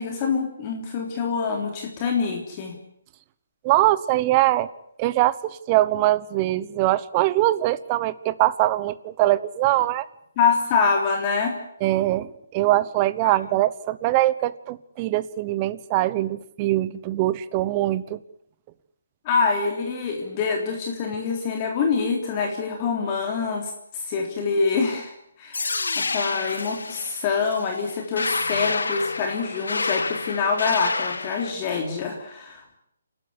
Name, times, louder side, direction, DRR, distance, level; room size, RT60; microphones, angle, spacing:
voice 1, 0.0-2.8 10.4-11.6 13.2-13.3 19.3-32.8, left 5 dB, 30° left, 2 dB, 3.6 m, -25 dB
voice 2, 3.6-4.7 5.0-10.0 11.8-18.2, right 16 dB, 25° right, 16 dB, 1.0 m, -22 dB
sound 1, 25.5-31.5, left 3 dB, 80° left, 2.2 m, -29 dB
28.5 x 13.0 x 9.9 m, 0.72 s
hypercardioid pair, 150°, 0 cm